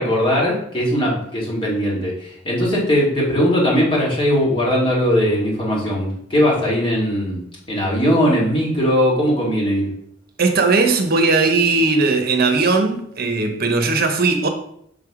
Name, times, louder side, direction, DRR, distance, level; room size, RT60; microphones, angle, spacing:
voice 1, 0.0-7.4 7.7-9.9, equal, 25° left, 2.2 m, -19 dB
voice 2, 10.4-14.5, right 3 dB, 55° right, 0.9 m, -18 dB
6.4 x 3.4 x 4.9 m
head